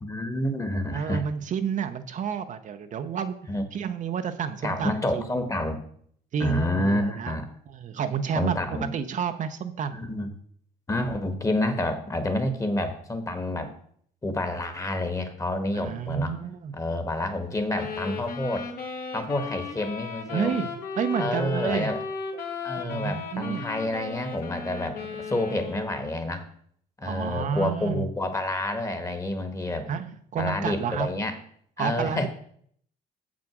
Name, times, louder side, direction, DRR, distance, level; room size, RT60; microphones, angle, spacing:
voice 1, 0.0-1.2 3.5-3.6 4.6-5.8 6.4-7.5 8.3-8.9 9.9-10.3 10.9-13.7 14.2-16.4 16.7-18.7 19.1-20.5 21.2-22.0 22.6-26.5 27.0-29.9 30.4-31.4 31.8-32.3, left 1 dB, 20° left, 9 dB, 1.3 m, -29 dB
voice 2, 0.9-3.4 3.7-5.3 6.3-7.3 7.7-10.0 15.7-16.7 20.3-21.9 22.8-23.7 27.0-28.1 29.9-31.1 31.8-32.3, right 7 dB, 50° right, 8 dB, 0.7 m, -30 dB
sound 1, 17.7-26.1, left 5 dB, 65° left, 1.8 m, -35 dB
7.1 x 6.1 x 6.0 m, 0.63 s
cardioid pair, 110°, 17 cm